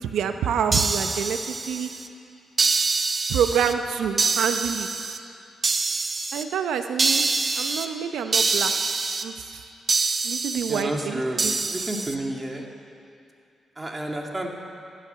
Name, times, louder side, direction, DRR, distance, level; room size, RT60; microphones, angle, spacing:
voice 1, 0.0-1.4 1.7-1.9 3.3-4.9 6.3-7.3 7.5-8.7 9.2-9.6 10.2-11.5, right 8 dB, 90° right, 7 dB, 0.8 m, -27 dB
sound 1, 0.7-2.1 2.6-3.7 4.2-5.2 5.6-6.4 7.0-7.9 8.3-9.2 9.9-10.8 11.4-12.1, right 3 dB, 40° right, 0.9 m, -25 dB
voice 2, 10.7-11.4 11.7-12.7 13.8-14.5, right 1 dB, 20° right, 0 dB, 2.3 m, -30 dB
15.5 x 11.5 x 6.9 m, 2.5 s
cardioid pair, 65°, 0 cm